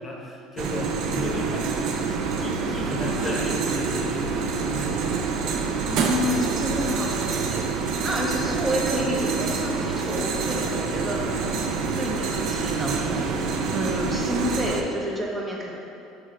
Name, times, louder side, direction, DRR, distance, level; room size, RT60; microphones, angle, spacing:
voice 1, 0.0-1.7 2.1-5.0, left 1 dB, 25° left, -1 dB, 0.9 m, -33 dB
sound 1, 0.6-14.8, right 4 dB, 60° right, 0.5 m, -26 dB
voice 2, 5.8-11.4 12.0-15.7, left 1 dB, 20° right, -2 dB, 0.8 m, -29 dB
6.2 x 4.0 x 3.8 m, 2.8 s
supercardioid pair, 115°, 0 cm